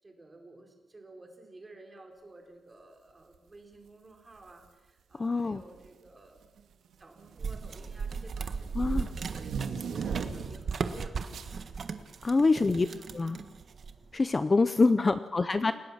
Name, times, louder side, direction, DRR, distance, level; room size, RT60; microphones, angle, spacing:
voice 1, 0.0-6.4 7.0-11.9 12.8-13.3 15.6-15.7, right 2 dB, 20° right, 3 dB, 4.2 m, -53 dB
sound 1, 4.4-4.7 5.6-6.1 6.4-10.7 11.3-11.5, right 6 dB, 85° right, 2.1 m, -39 dB
voice 2, 5.1-5.6 8.7-9.1 12.2-12.9 13.1-13.4 14.1-15.7, left 3 dB, 25° left, 12 dB, 0.7 m, -25 dB
sound 2, 7.4-14.1, right 5 dB, 45° right, 1.5 m, -36 dB
29.5 x 18.0 x 7.4 m, 1.2 s
wide cardioid pair, 160°, 0 cm